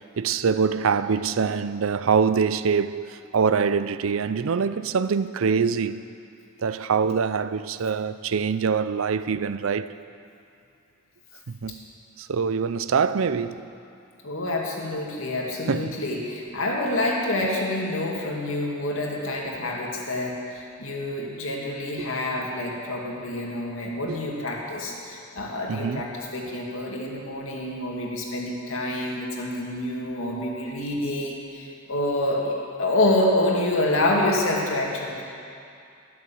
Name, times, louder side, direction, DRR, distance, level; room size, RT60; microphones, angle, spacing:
voice 1, 0.2-6.0 6.6-9.9 11.5-11.8 12.2-13.6 15.7-15.9 22.0-22.1 24.1-24.2 25.7-26.1, right 6 dB, 85° right, 0.5 m, -24 dB
voice 2, 14.2-35.2, left 1 dB, 85° left, 2.3 m, -27 dB
12.5 x 11.0 x 7.1 m
head